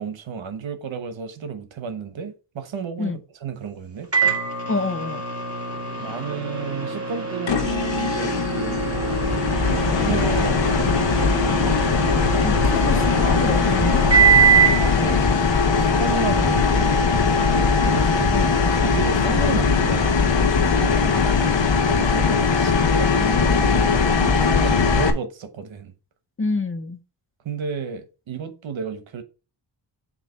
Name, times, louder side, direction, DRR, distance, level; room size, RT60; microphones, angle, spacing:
voice 1, 0.0-4.1 6.0-11.3 13.2-13.3 14.8-15.2 15.6-18.5 18.8-21.3 21.8-23.1 23.4-25.9 27.4-29.2, right 6 dB, 80° right, 1.2 m, -32 dB
Microwave oven, 4.1-14.9, right 6 dB, 30° right, 2.2 m, -23 dB
voice 2, 4.7-5.2 12.4-14.1 18.3-18.6 22.6-23.7 26.4-27.0, left 3 dB, 30° left, 0.5 m, -28 dB
sound 1, 7.5-25.1, left 5 dB, 70° left, 1.0 m, -20 dB
sound 2, 7.8-17.3, right 3 dB, 5° right, 2.4 m, -45 dB
7.4 x 2.9 x 5.4 m
wide cardioid pair, 95°, 46 cm